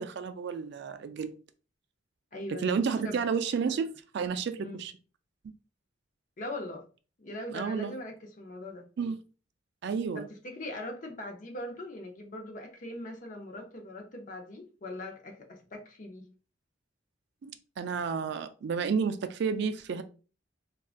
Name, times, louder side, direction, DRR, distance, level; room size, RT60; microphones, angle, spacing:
voice 1, 0.0-1.3 2.5-4.9 5.4-5.5 7.5-7.9 9.0-9.2 9.8-10.2 17.4-17.5 17.8-20.0, right 5 dB, 60° right, 0.3 m, -31 dB
voice 2, 2.3-2.7 3.0-3.2 4.6-4.9 6.4-6.9 7.2-8.8 10.1-16.3, left 1 dB, 40° left, 0.6 m, -41 dB
3.6 x 2.3 x 2.4 m
head